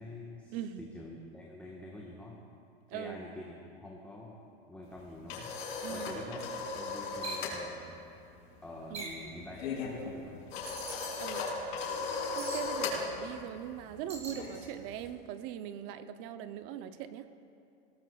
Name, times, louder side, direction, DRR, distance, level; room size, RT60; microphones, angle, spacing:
voice 1, 0.0-2.4 2.9-4.4 4.7-5.6 5.9-8.0 8.6-10.5, left 2 dB, 5° left, -4 dB, 1.3 m, -46 dB
voice 2, 0.5-0.8 2.9-3.2 5.8-6.1 8.9-9.2 11.2-11.5 12.4-17.3, right 11 dB, 45° right, 11 dB, 0.6 m, -41 dB
sound 1, 4.9-7.6 7.9-8.2 8.4-15.1, left 4 dB, 85° left, 3.5 m, -37 dB
sound 2, 7.2-7.5 8.9-9.3 10.7-11.1 12.4-12.7 14.1-14.4, right 3 dB, 20° right, 2.8 m, -41 dB
19.5 x 17.5 x 2.4 m, 2.6 s
supercardioid pair, 130°, 30 cm